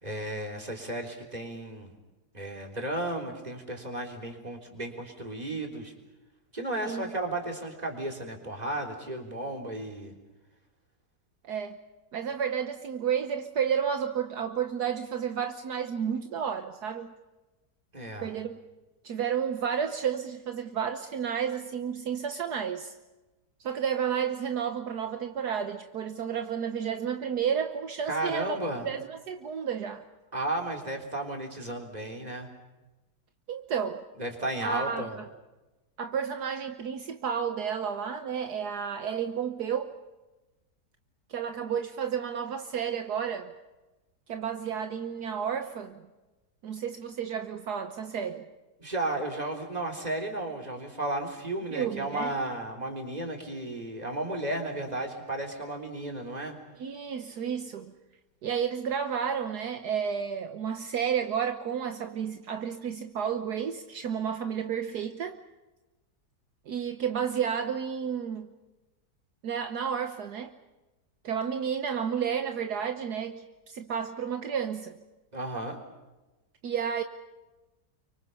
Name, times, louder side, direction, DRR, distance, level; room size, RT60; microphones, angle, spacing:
voice 1, 0.0-1.9 2.3-5.9 6.5-10.1 17.9-18.3 28.1-28.9 30.3-32.5 34.2-35.2 48.8-56.6 75.3-75.8, right 1 dB, 25° right, 2 dB, 3.9 m, -34 dB
voice 2, 11.4-11.8 12.1-17.1 18.2-18.6 19.0-22.9 23.6-28.6 28.8-30.0 33.5-34.0 34.6-35.2 36.0-39.9 41.3-43.5 44.3-46.0 46.6-48.4 51.7-52.3 56.8-57.9 58.4-65.4 66.7-68.5 69.4-70.5 71.2-74.9 76.6-77.0, right 7 dB, 70° right, 7 dB, 1.6 m, -31 dB
30.0 x 24.5 x 5.5 m, 1.1 s
omnidirectional pair, 1.8 m